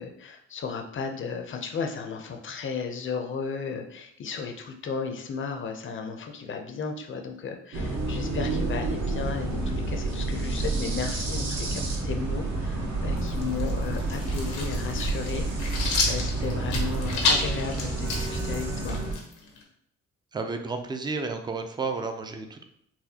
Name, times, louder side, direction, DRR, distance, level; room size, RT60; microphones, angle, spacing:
voice 1, 0.0-19.0, left 5 dB, 40° left, 4 dB, 0.6 m, -34 dB
sound 1, 7.7-19.1, right 2 dB, 65° right, 1.0 m, -29 dB
sound 2, 13.2-19.6, left 3 dB, 85° left, 0.9 m, -31 dB
voice 2, 20.3-22.7, right 4 dB, 15° right, 6 dB, 0.4 m, -32 dB
4.1 x 2.2 x 2.8 m, 0.73 s
cardioid pair, 90°, 30 cm